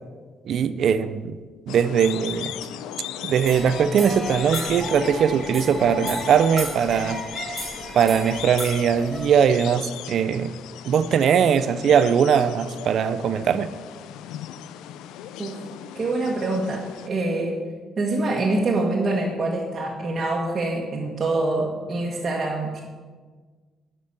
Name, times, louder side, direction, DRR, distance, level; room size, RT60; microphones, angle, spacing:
voice 1, 0.5-1.4 1.7-2.5 3.2-7.2 7.9-10.5 10.8-13.7, right 7 dB, 65° right, 13 dB, 0.6 m, -20 dB
sound 1, 1.7-17.1, left 11 dB, 85° left, 0.4 m, -38 dB
sound 2, 3.4-9.3, right 1 dB, 5° right, 3.4 m, -33 dB
voice 2, 15.9-17.6 18.0-22.8, right 2 dB, 40° right, -3 dB, 1.7 m, -25 dB
10.5 x 6.1 x 6.8 m, 1.4 s
supercardioid pair, 75°, 0 cm